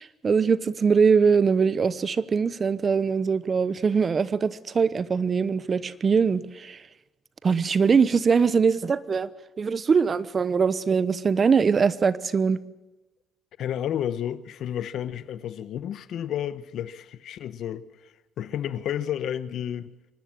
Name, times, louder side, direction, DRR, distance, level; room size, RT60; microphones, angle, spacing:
voice 1, 0.0-6.8 7.4-9.3 9.6-12.6, right 5 dB, 40° right, 0.9 m, -22 dB
voice 2, 13.6-17.9 18.4-19.9, left 10 dB, 65° left, 1.0 m, -31 dB
25.0 x 12.0 x 8.9 m
cardioid pair, 85°, 0 cm